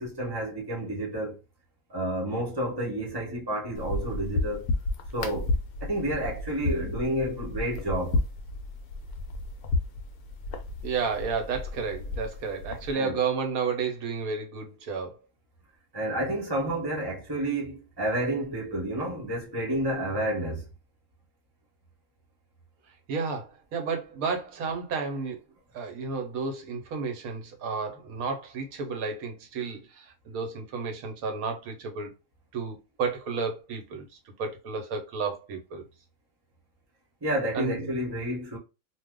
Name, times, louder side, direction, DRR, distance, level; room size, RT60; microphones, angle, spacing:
voice 1, 0.0-1.4 1.9-4.7 5.1-5.5 5.8-8.2 12.9-13.2 15.9-20.7 37.2-38.6, right 1 dB, 20° right, 0.9 m, -30 dB
sound 1, 3.8-12.9, left 2 dB, 70° left, 1.0 m, -32 dB
voice 2, 10.8-15.1 23.1-25.4 25.7-32.1 32.5-34.1 34.4-35.8 37.5-37.9, right 5 dB, 70° right, 1.2 m, -32 dB
2.6 x 2.3 x 3.5 m
omnidirectional pair, 1.7 m